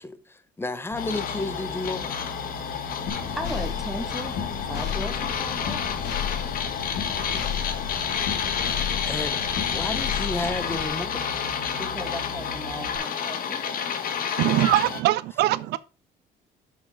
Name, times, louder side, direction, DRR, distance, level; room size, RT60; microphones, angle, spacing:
voice 1, 0.0-2.1 9.1-9.4 9.7-11.4, left 2 dB, 15° left, 0.9 m, -32 dB
sound 1, 0.9-13.0, left 1 dB, 25° right, 3.2 m, -41 dB
sound 2, 1.0-15.0, left 7 dB, 60° left, 1.5 m, -30 dB
sound 3, 3.1-10.9, left 8 dB, 80° left, 2.4 m, -33 dB
voice 2, 3.1-6.1 11.8-13.7, equal, ahead, 2.1 m, -37 dB
voice 3, 14.4-15.8, right 16 dB, 80° right, 0.5 m, -22 dB
6.4 x 5.9 x 6.2 m
cardioid pair, 110°, 17 cm